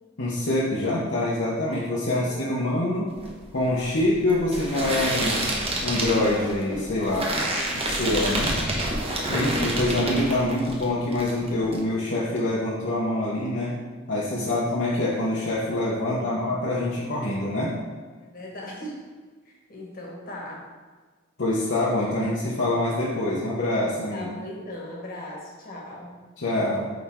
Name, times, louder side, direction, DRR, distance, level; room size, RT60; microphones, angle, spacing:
voice 1, 0.2-3.1 3.5-5.4 5.8-7.3 7.7-8.6 9.3-13.8 14.1-17.8 21.4-24.3 26.4-26.9, left 1 dB, 65° left, -6 dB, 1.0 m, -25 dB
voice 2, 2.1-2.7 7.5-8.2 16.0-16.4 18.2-19.2 19.4-20.7 24.1-26.2, left 1 dB, 45° left, -2 dB, 1.4 m, -39 dB
sound 1, 3.1-10.8 11.1-11.8, right 1 dB, 30° right, 1.1 m, -28 dB
8.7 x 3.5 x 3.7 m, 1.4 s
head